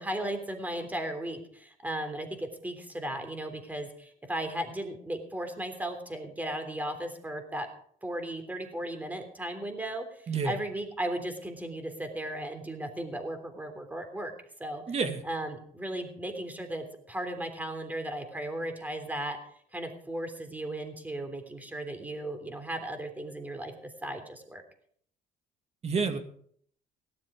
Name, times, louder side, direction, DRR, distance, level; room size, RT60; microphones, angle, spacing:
voice 1, 0.0-7.7 8.0-14.3 14.6-14.8 15.2-19.4 19.7-24.6, right 1 dB, 10° right, 6 dB, 3.3 m, -36 dB
voice 2, 14.9-15.2 25.8-26.2, right 5 dB, 40° right, 7 dB, 2.2 m, -29 dB
17.5 x 12.0 x 5.0 m, 0.62 s
cardioid pair, 110°, 17 cm